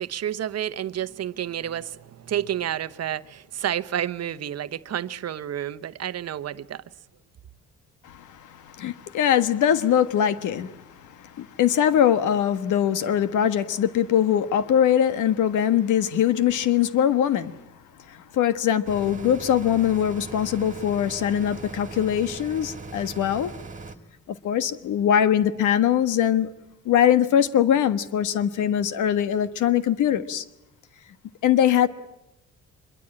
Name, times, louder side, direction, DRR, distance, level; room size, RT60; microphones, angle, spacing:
voice 1, 0.0-6.8, right 10 dB, 55° right, 1.0 m, -30 dB
voice 2, 8.0-17.5 18.1-23.5 24.4-26.5 26.8-30.4 31.4-31.9, left 9 dB, 80° left, 1.5 m, -22 dB
sound 1, 18.9-24.0, right 3 dB, 25° right, 2.2 m, -40 dB
25.0 x 22.5 x 8.8 m
cardioid pair, 90°, 30 cm